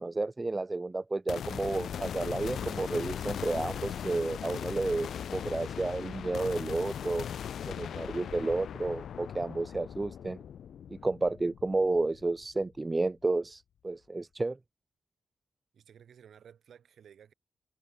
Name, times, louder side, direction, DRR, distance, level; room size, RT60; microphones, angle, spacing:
voice 1, 0.0-7.3 7.6-10.4 10.9-14.6, right 2 dB, 30° right, 0.4 m, -31 dB
sound 1, 1.3-12.6, left 9 dB, 80° left, 2.7 m, -39 dB
voice 2, 15.7-17.3, right 8 dB, 80° right, 6.2 m, -55 dB
cardioid pair, 55°, 0 cm